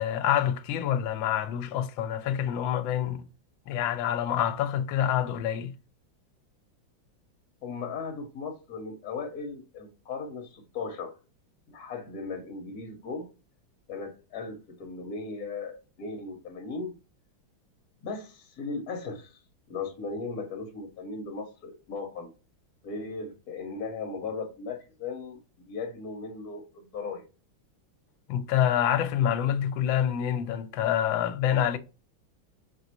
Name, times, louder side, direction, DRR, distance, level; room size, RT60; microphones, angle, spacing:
voice 1, 0.0-3.2 3.7-5.7 28.3-31.8, left 10 dB, 80° left, 1.3 m, -27 dB
voice 2, 7.6-11.2 11.7-13.3 13.9-16.9 18.0-19.4 19.7-22.3 22.8-25.4 25.7-27.2, left 4 dB, 60° left, 1.2 m, -37 dB
5.6 x 3.0 x 2.9 m
omnidirectional pair, 2.2 m